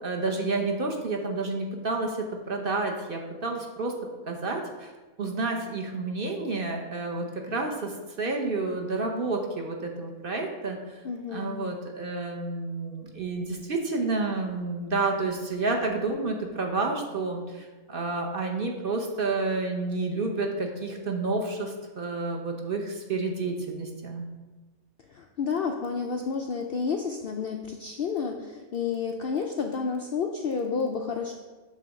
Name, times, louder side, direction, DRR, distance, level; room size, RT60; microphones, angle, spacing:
voice 1, 0.0-3.9 4.3-4.9 5.2-11.0 11.3-24.3, right 3 dB, 45° right, 2 dB, 0.8 m, -30 dB
voice 2, 11.0-11.6 25.1-31.3, left 5 dB, 85° left, 3 dB, 0.5 m, -30 dB
7.7 x 3.5 x 6.3 m, 1.3 s
omnidirectional pair, 1.6 m